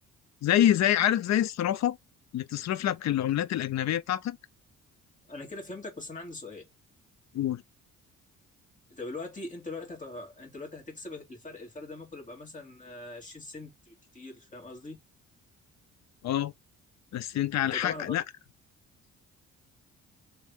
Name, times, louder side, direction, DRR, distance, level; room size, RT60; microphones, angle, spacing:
voice 1, 0.4-2.0 2.3-4.4 7.3-7.6 16.2-16.5 17.1-18.2, left 12 dB, 60° left, 0.6 m, -26 dB
voice 2, 5.3-6.7 8.9-15.0 17.7-18.2, left 2 dB, 25° left, 2.6 m, -41 dB
3.5 x 3.3 x 3.5 m
cardioid pair, 90°, 30 cm